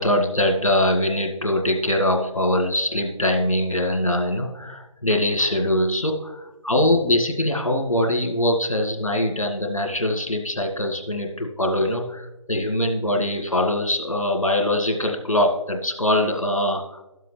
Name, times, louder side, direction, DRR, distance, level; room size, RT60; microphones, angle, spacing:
voice 1, 0.0-17.0, left 1 dB, 80° left, 2 dB, 1.9 m, -22 dB
13.0 x 7.6 x 3.2 m, 1.0 s
figure-of-eight pair, 145°, 17 cm